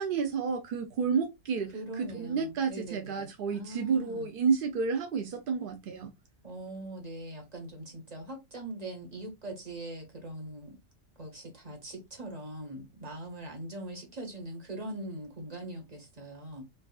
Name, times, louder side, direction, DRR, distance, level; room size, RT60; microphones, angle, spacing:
voice 1, 0.0-6.1, right 5 dB, 70° right, 0.5 m, -30 dB
voice 2, 1.7-4.3 6.4-10.8 11.2-16.6, right 1 dB, 30° right, 1.3 m, -41 dB
4.6 x 2.4 x 2.4 m
omnidirectional pair, 1.5 m